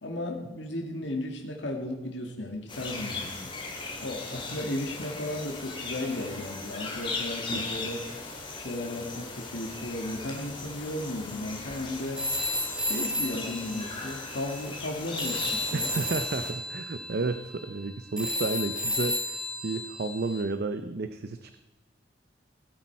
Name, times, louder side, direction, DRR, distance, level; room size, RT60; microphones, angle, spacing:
voice 1, 0.0-8.1 8.5-12.2 12.8-15.9, left 1 dB, 70° left, 2 dB, 1.8 m, -35 dB
sound 1, 2.7-16.5, left 3 dB, 25° left, 2.1 m, -38 dB
Telephone, 12.2-14.9 15.2-20.4, left 1 dB, 5° right, 1.3 m, -33 dB
voice 2, 15.7-21.5, right 3 dB, 55° right, 10 dB, 0.6 m, -32 dB
17.5 x 8.4 x 4.6 m, 1.0 s
head